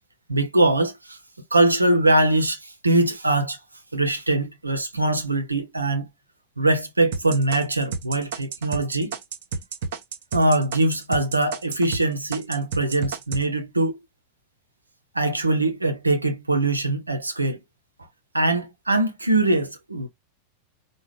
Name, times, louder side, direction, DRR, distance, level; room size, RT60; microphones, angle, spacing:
voice 1, 0.3-1.2 1.5-3.6 3.9-6.1 6.6-9.2 10.3-14.0 15.1-17.6 18.3-20.1, right 2 dB, 80° right, 0.9 m, -22 dB
sound 1, 7.1-12.0 12.3-13.4, right 4 dB, 55° right, 1.0 m, -30 dB
4.8 x 2.4 x 3.1 m
figure-of-eight pair, 90°, 0 cm